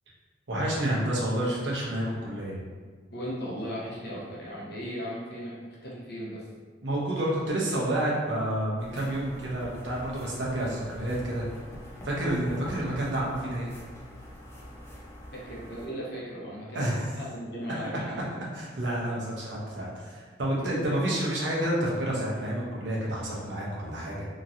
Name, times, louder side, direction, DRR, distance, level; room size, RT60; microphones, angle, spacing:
voice 1, 0.5-2.6 6.8-11.4 12.0-13.7 16.7-17.1 18.5-24.3, right 1 dB, 75° right, -4 dB, 0.8 m, -29 dB
voice 2, 3.1-6.5 15.3-18.1, equal, 65° left, -5 dB, 0.8 m, -37 dB
sound 1, 8.8-15.9, equal, 15° left, 0.5 m, -45 dB
2.9 x 2.7 x 2.5 m, 1.5 s
head